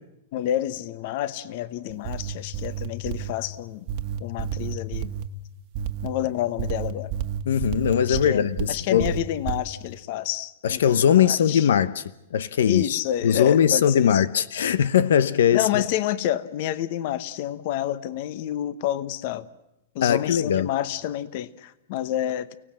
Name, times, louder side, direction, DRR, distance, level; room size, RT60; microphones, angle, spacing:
voice 1, 0.3-3.9 4.2-5.1 6.0-7.1 8.0-11.7 12.7-14.3 15.5-19.5 19.9-22.5, left 12 dB, 45° left, 1.0 m, -29 dB
sound 1, 1.9-3.3 3.9-5.3 5.7-6.1 6.6-8.7 9.0-9.6, right 9 dB, 40° right, 1.4 m, -30 dB
voice 2, 7.5-9.1 10.6-12.0 12.3-15.8 20.0-20.7, left 9 dB, 80° left, 0.8 m, -20 dB
30.0 x 18.0 x 7.6 m
supercardioid pair, 165°, 0 cm